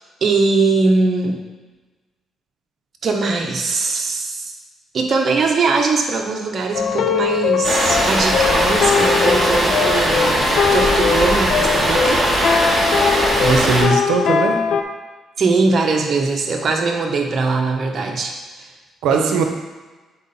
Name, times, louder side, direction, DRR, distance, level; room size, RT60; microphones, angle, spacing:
voice 1, 0.2-1.4 3.0-4.5 4.9-12.2 15.4-18.7 19.1-19.5, right 3 dB, 50° right, 1 dB, 1.0 m, -20 dB
sound 1, 6.7-14.8, left 6 dB, 70° left, 0.5 m, -20 dB
sound 2, 7.6-13.8, right 1 dB, 15° right, 2.0 m, -19 dB
voice 2, 13.1-14.6 19.0-19.4, right 4 dB, 90° right, 5 dB, 0.8 m, -19 dB
7.3 x 4.3 x 4.2 m, 1.2 s
cardioid pair, 90°, 0 cm